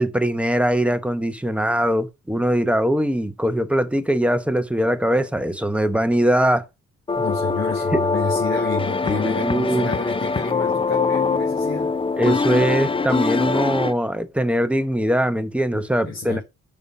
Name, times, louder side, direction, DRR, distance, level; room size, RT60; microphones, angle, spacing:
voice 1, 0.0-6.6 7.9-8.0 9.1-9.9 12.2-16.4, right 1 dB, 5° right, 0.9 m, -21 dB
sound 1, 7.1-13.9, left 4 dB, 20° left, 0.5 m, -23 dB
voice 2, 7.2-11.9 16.0-16.4, left 4 dB, 40° left, 3.3 m, -29 dB
6.6 x 5.7 x 4.7 m
cardioid pair, 90°, 30 cm